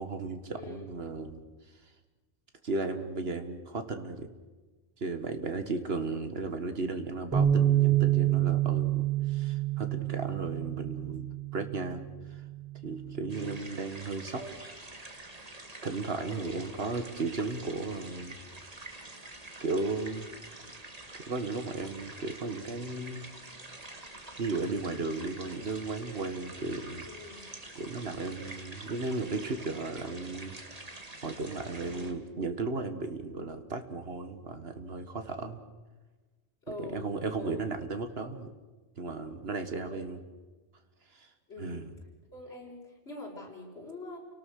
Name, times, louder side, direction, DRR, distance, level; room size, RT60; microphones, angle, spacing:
voice 1, 0.0-1.4 2.6-4.3 5.0-12.0 12.3-12.4 12.8-14.4 15.8-18.4 19.6-20.3 21.1-23.2 24.4-27.1 27.8-30.6 31.2-35.6 36.8-38.5 39.0-40.2 41.1-41.3 41.6-41.9, right 3 dB, 60° right, 8 dB, 1.9 m, -35 dB
voice 2, 0.6-0.9 14.2-14.6 16.3-16.5 27.1-27.4 31.8-32.2 36.6-37.1 37.4-37.7 39.7-40.1 41.5-41.8 42.3-44.2, left 2 dB, 65° left, -2 dB, 5.5 m, -44 dB
Bass guitar, 7.3-13.6, right 12 dB, ahead, 6.5 m, -28 dB
sound 1, 13.3-32.1, right 2 dB, 35° right, 2.0 m, -47 dB
29.0 x 18.5 x 6.6 m, 1.2 s
omnidirectional pair, 1.2 m